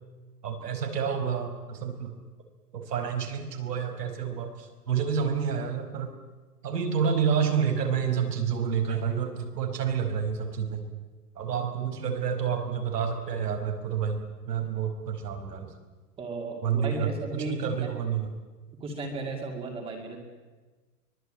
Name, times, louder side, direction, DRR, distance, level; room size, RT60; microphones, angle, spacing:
voice 1, 0.4-2.1 2.7-6.1 6.6-10.8 11.4-15.7 16.6-18.3, right 7 dB, 85° right, 6 dB, 5.3 m, -29 dB
voice 2, 16.2-18.0 18.8-20.2, right 3 dB, 10° right, 2 dB, 2.4 m, -35 dB
24.0 x 21.0 x 8.9 m, 1.3 s
hypercardioid pair, 170°, 46 cm